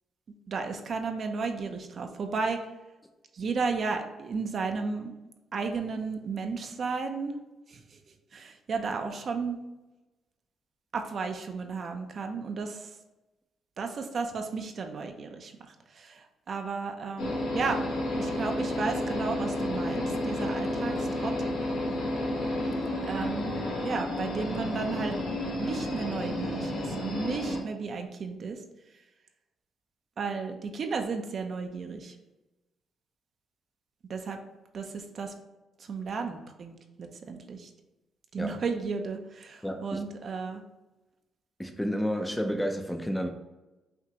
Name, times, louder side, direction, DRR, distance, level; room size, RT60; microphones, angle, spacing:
voice 1, 0.5-2.6 3.3-5.1 5.5-7.3 7.7-8.0 8.3-9.6 10.9-12.9 13.8-17.8 18.2-21.3 23.1-23.5 23.8-25.1 25.6-28.6 30.2-32.1 34.1-34.4 34.7-35.3 35.9-37.7 38.3-40.6, right 4 dB, 50° right, 0.5 m, -33 dB
sound 1, 17.2-27.6, left 1 dB, 85° left, 1.5 m, -31 dB
voice 2, 39.6-40.0 41.6-43.3, equal, 5° left, 0.5 m, -30 dB
5.8 x 2.5 x 2.9 m
cardioid pair, 90°, 0 cm